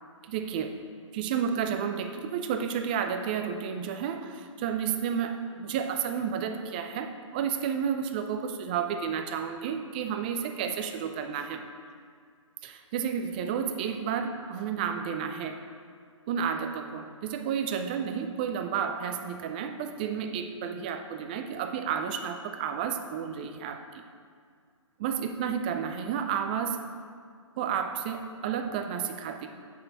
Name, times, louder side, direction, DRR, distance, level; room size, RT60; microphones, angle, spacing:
voice 1, 0.2-0.8 1.1-11.6 12.6-15.6 16.3-23.8 25.0-26.9 27.6-29.5, right 7 dB, 15° right, 6 dB, 0.3 m, -31 dB
8.7 x 6.2 x 3.4 m, 2.1 s
figure-of-eight pair, 145°, 17 cm